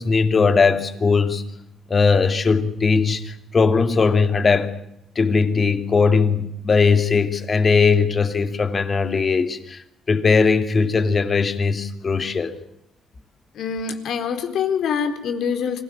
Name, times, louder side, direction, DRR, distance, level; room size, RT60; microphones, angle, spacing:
voice 1, 0.0-1.4 1.9-4.7 5.2-12.6, left 4 dB, 40° left, 9 dB, 2.6 m, -19 dB
voice 2, 13.5-15.8, left 7 dB, 75° left, 6 dB, 4.3 m, -25 dB
25.0 x 17.0 x 8.7 m, 0.84 s
cardioid pair, 90°, 0 cm